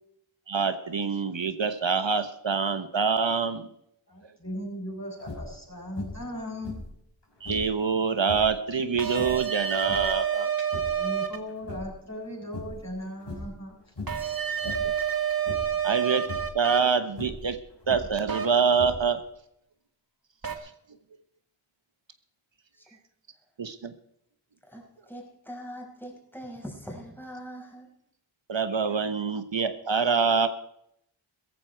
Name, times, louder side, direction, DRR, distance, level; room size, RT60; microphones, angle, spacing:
voice 1, 0.5-3.7 7.4-10.5 14.6-14.8 15.8-16.3 16.5-17.6 17.9-19.2 20.6-20.7 23.6-23.9 28.5-30.5, right 5 dB, 65° right, 10 dB, 1.1 m, -25 dB
voice 2, 4.1-6.8 10.9-13.7, equal, 35° left, -1 dB, 7.9 m, -37 dB
sound 1, 5.2-5.6 6.0-6.3 6.6-7.8 8.2-8.6 9.1-10.2 10.6-11.1 11.5-12.2 12.5-12.9 13.2-13.6 14.0-14.3 14.6-15.0 15.4-15.8 16.2-16.5 17.1-18.3 18.7-19.3, left 3 dB, 60° left, 5.9 m, -39 dB
sound 2, 9.0-11.4 14.1-16.8 18.3-18.5 20.4-20.6, right 8 dB, 45° right, 2.1 m, -28 dB
voice 3, 24.6-27.9, equal, 5° left, -1 dB, 5.5 m, -42 dB
17.0 x 14.5 x 4.5 m, 0.74 s
wide cardioid pair, 60°, 49 cm